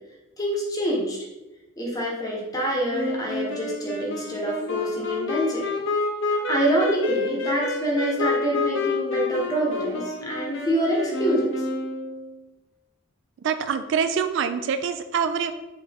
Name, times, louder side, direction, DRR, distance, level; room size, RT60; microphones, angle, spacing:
voice 1, 0.4-1.2 1.8-5.6 6.3-11.5, right 1 dB, 20° left, -3 dB, 1.1 m, -26 dB
Wind instrument woodwind instrument, 2.9-12.4, left 3 dB, 60° left, 0.7 m, -29 dB
voice 2, 13.4-15.5, right 6 dB, 60° right, 9 dB, 0.3 m, -25 dB
4.4 x 3.3 x 3.5 m, 1.0 s
head